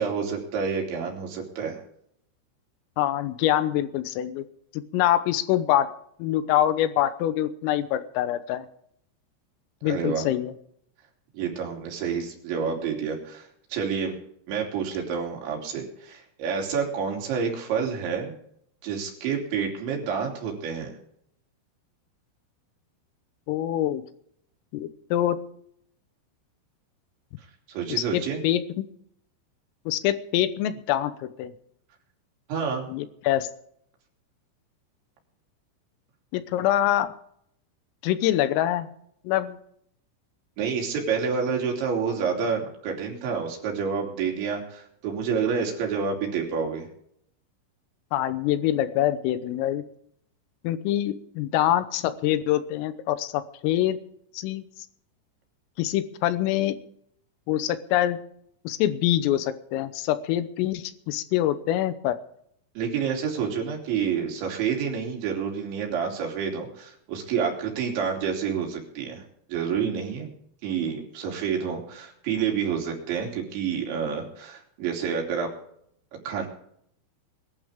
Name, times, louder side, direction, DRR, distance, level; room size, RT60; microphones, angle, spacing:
voice 1, 0.0-1.8 9.8-10.3 11.3-14.2 14.5-18.3 18.8-20.9 27.7-28.4 32.5-32.9 40.6-46.9 62.8-69.2 69.5-70.3 70.6-75.5 76.3-76.5, right 6 dB, 65° right, 0 dB, 5.2 m, -28 dB
voice 2, 3.0-4.5 4.7-5.9 6.2-8.7 9.8-10.5 23.5-24.0 24.7-25.4 27.9-28.9 29.9-31.5 32.9-33.5 36.3-37.1 38.0-38.9 39.3-39.6 48.1-49.8 50.7-54.0 54.4-54.7 55.8-56.8 57.5-58.2 58.7-62.2, left 12 dB, 80° left, 13 dB, 3.5 m, -25 dB
21.5 x 12.5 x 3.6 m, 0.69 s
omnidirectional pair, 6.0 m